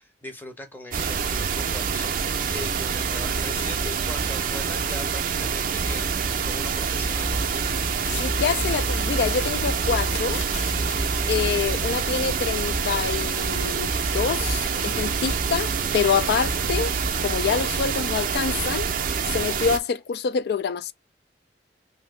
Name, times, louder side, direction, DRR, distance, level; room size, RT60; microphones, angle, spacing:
voice 1, 0.0-7.4, left 1 dB, 10° left, 0.8 m, -40 dB
sound 1, 0.9-19.8, right 6 dB, 50° right, 0.5 m, -26 dB
sound 2, 5.8-6.7 6.9-13.5 13.8-16.1 16.4-17.4, equal, 40° left, 0.9 m, -33 dB
voice 2, 8.2-10.4 11.3-18.9 19.3-20.9, left 6 dB, 65° left, 0.3 m, -26 dB
2.8 x 2.6 x 3.1 m
head